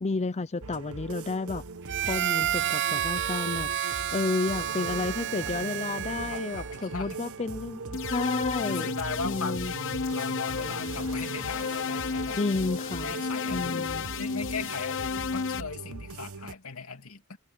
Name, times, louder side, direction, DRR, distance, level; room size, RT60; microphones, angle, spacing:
voice 1, 0.0-1.6 2.1-8.9 9.2-9.7 12.4-13.2 13.5-14.1, left 3 dB, 30° left, 0.5 m, -31 dB
sound 1, 0.6-16.5, right 3 dB, 90° right, 1.3 m, -40 dB
Harmonica, 1.9-6.9, right 10 dB, 55° right, 0.6 m, -30 dB
voice 2, 6.3-7.2 8.7-12.4 13.0-13.9 14.2-17.4, left 4 dB, 80° left, 2.8 m, -38 dB
sound 2, 7.9-15.6, left 6 dB, 60° left, 0.8 m, -33 dB
head